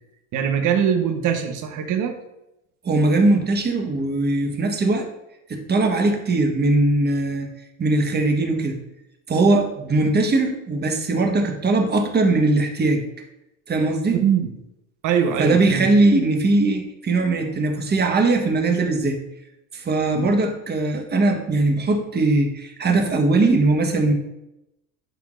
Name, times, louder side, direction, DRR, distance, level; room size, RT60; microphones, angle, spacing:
voice 1, 0.3-2.1 14.2-14.5 15.0-15.9 20.2-20.4, right 8 dB, 50° right, 5 dB, 1.2 m, -22 dB
voice 2, 2.8-5.1 5.5-7.5 7.8-8.8 9.3-13.0 13.7-14.2 15.4-19.2 19.7-24.1, right 2 dB, 25° right, 4 dB, 1.3 m, -20 dB
11.0 x 4.5 x 2.6 m, 0.88 s
supercardioid pair, 95°, 41 cm